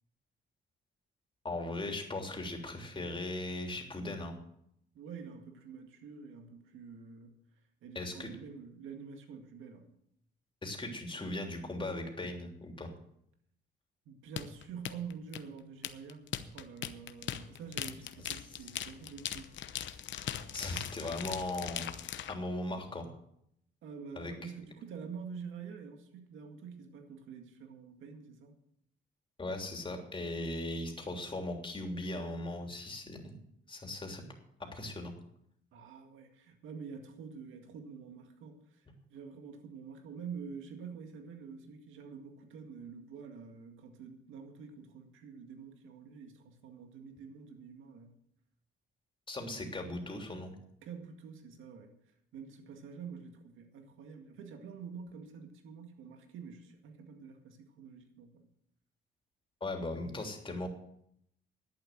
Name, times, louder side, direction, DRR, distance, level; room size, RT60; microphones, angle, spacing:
voice 1, 1.4-4.3 7.9-8.3 10.6-12.9 20.5-21.9 22.3-23.1 24.2-24.3 29.4-33.4 33.7-34.2 34.7-35.1 49.3-50.6 59.6-60.7, left 2 dB, 25° left, 3.2 m, -38 dB
voice 2, 4.9-7.4 7.8-9.9 14.1-16.3 16.5-19.5 23.8-28.5 35.7-48.2 50.8-52.0 52.3-58.5, right 6 dB, 85° right, 2.0 m, -47 dB
sound 1, 14.4-22.3, left 10 dB, 70° left, 0.9 m, -40 dB
11.5 x 8.6 x 7.4 m
cardioid pair, 90°, 20 cm